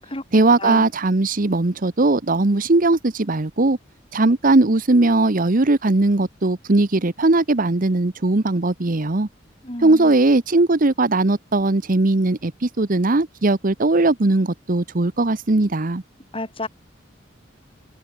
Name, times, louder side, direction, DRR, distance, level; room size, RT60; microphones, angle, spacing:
voice 1, 0.3-3.8 4.1-9.3 9.8-16.0, right 2 dB, 45° right, 1.0 m, -19 dB
voice 2, 9.6-10.1 16.3-16.7, left 2 dB, 30° left, 4.8 m, -31 dB
head